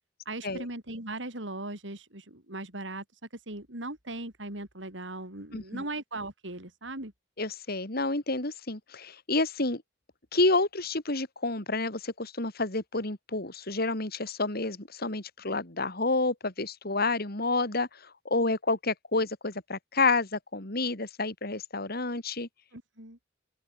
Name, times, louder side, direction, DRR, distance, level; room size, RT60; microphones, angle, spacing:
voice 1, 0.2-3.0 3.5-7.1 22.7-23.2, right 2 dB, 75° right, 5.0 m, -38 dB
voice 2, 5.5-5.8 7.4-9.8 10.3-17.9 18.3-22.5, left 3 dB, 55° left, 3.7 m, -29 dB
open air
head